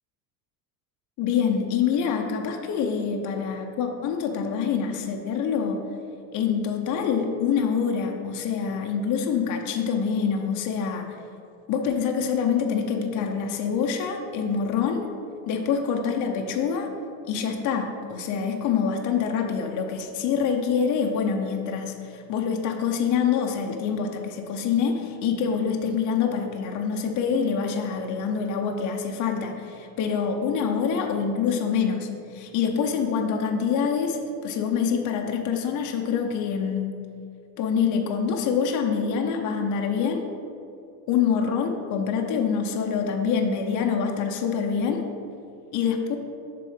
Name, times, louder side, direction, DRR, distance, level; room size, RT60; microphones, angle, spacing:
voice 1, 1.2-5.8 6.3-11.1 11.7-15.1 15.5-16.9 17.3-36.9 37.6-40.3 41.1-45.1 45.7-46.2, left 6 dB, 40° left, 2 dB, 0.7 m, -26 dB
6.7 x 3.8 x 5.5 m, 2.5 s
cardioid pair, 140°, 46 cm